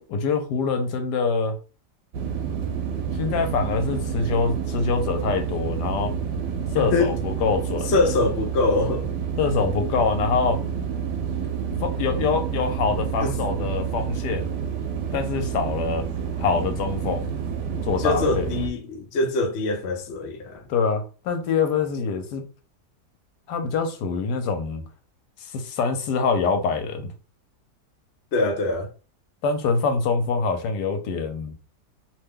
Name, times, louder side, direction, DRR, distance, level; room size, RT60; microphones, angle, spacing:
voice 1, 0.1-1.6 3.1-6.1 6.7-7.9 9.4-10.6 11.8-14.5 15.1-16.0 16.4-17.3 17.8-18.5 20.7-22.4 23.5-24.8 25.4-27.1 29.4-31.5, left 5 dB, 80° left, 1.2 m, -25 dB
sound 1, 2.1-18.7, right 7 dB, 85° right, 1.2 m, -29 dB
voice 2, 6.7-7.1 7.9-9.1 13.2-13.4 18.0-20.7 28.3-28.9, left 2 dB, 65° left, 0.6 m, -24 dB
2.9 x 2.2 x 3.4 m
omnidirectional pair, 1.8 m